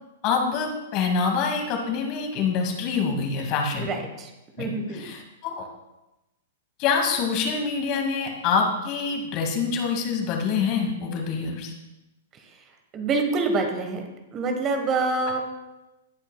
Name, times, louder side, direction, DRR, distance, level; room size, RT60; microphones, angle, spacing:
voice 1, 0.2-3.9 4.6-5.7 6.8-11.7, left 5 dB, 35° left, 2 dB, 2.2 m, -26 dB
voice 2, 3.8-4.3 4.6-5.0 12.9-15.4, right 3 dB, 25° right, 4 dB, 1.4 m, -26 dB
18.5 x 8.8 x 2.4 m, 0.98 s
figure-of-eight pair, 105°, 0 cm